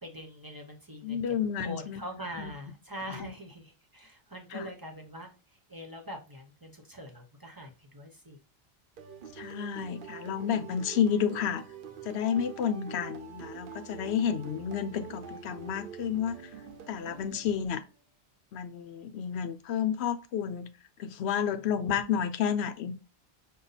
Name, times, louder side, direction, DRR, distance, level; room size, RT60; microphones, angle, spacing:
voice 1, 0.0-1.3 1.6-8.4, equal, 25° right, 0.7 m, -43 dB
voice 2, 1.0-2.0 2.4-2.5 3.1-3.3 4.5-4.7 9.3-11.6 12.0-16.5 16.9-17.8 18.5-20.7 21.0-23.0, left 8 dB, 85° left, 0.8 m, -31 dB
sound 1, 9.0-17.9, right 7 dB, 60° right, 0.7 m, -45 dB
5.5 x 2.2 x 3.9 m
omnidirectional pair, 1.1 m